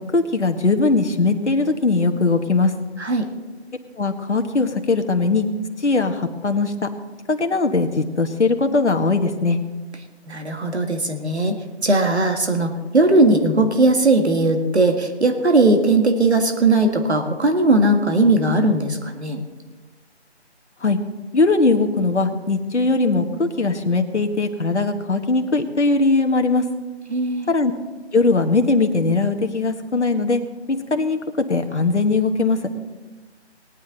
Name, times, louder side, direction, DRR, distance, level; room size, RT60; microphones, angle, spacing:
voice 1, 0.1-2.7 4.0-5.5 5.8-6.9 7.3-9.6 20.8-21.0 21.3-26.6 27.5-27.7 28.1-30.4 30.7-32.6, left 3 dB, 85° left, 6 dB, 1.4 m, -20 dB
voice 2, 10.3-19.4 27.1-27.5, right 2 dB, 75° right, 5 dB, 1.9 m, -18 dB
19.0 x 9.5 x 4.0 m, 1.2 s
figure-of-eight pair, 170°, 34 cm